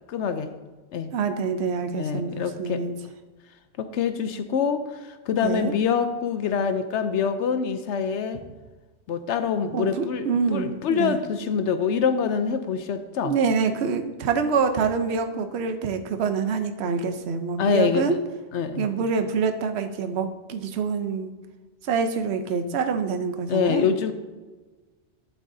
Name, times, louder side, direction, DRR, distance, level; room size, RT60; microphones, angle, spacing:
voice 1, 0.1-0.5 0.9-1.1 2.0-2.8 3.8-8.4 9.1-13.3 17.6-18.2 18.5-18.9 23.5-24.1, left 6 dB, 80° left, 9 dB, 0.9 m, -25 dB
voice 2, 1.1-2.9 5.4-5.7 9.7-11.2 13.2-18.2 18.8-21.3 21.9-23.9, right 5 dB, 70° right, 7 dB, 1.0 m, -26 dB
12.0 x 8.3 x 2.7 m, 1.3 s
omnidirectional pair, 1.2 m